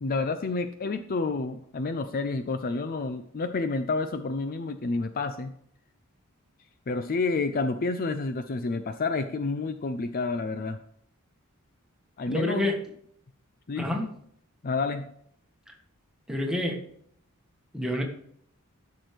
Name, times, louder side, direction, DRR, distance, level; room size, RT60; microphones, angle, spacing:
voice 1, 0.0-5.5 6.9-10.8 12.2-12.7 13.7-13.9 14.6-15.1, left 3 dB, 40° left, 9 dB, 0.5 m, -29 dB
voice 2, 12.3-12.8 13.8-14.1 15.7-15.8 16.3-16.8 17.7-18.0, left 1 dB, 5° right, 1 dB, 1.4 m, -28 dB
13.0 x 6.2 x 3.4 m, 0.66 s
head